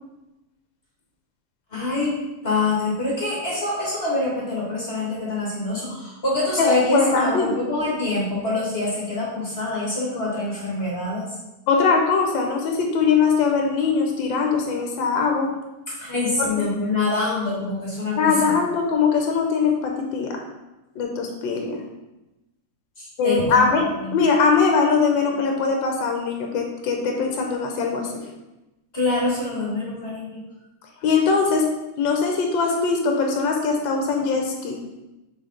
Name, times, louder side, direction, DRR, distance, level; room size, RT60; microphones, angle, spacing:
voice 1, 1.7-11.2 15.9-18.4 23.0-23.6 24.0-24.3 28.9-30.4, left 2 dB, 35° left, -5 dB, 1.6 m, -25 dB
voice 2, 6.6-7.5 11.7-15.5 16.4-16.5 18.2-20.3 21.0-21.8 23.2-23.9 24.1-28.2 31.0-31.7 32.0-34.8, left 5 dB, 80° left, 2 dB, 1.5 m, -21 dB
6.4 x 3.9 x 3.8 m, 1.0 s
omnidirectional pair, 2.0 m